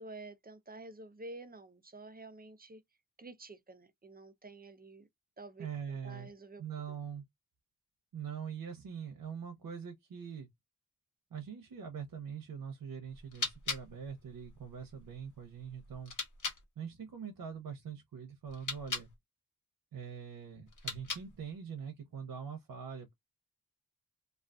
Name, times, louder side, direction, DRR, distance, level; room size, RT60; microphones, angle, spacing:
voice 1, 0.0-2.8 3.2-5.1 5.4-6.6 6.9-7.0, right 2 dB, 25° right, 0.6 m, -50 dB
voice 2, 5.6-6.3 6.6-7.2 8.1-10.5 11.3-16.1 16.8-19.1 19.9-23.1, right 7 dB, 80° right, 0.7 m, -43 dB
sound 1, 13.1-16.6 18.5-19.1 20.7-21.5, left 4 dB, 60° left, 1.1 m, -41 dB
2.3 x 2.3 x 2.3 m
cardioid pair, 45°, 34 cm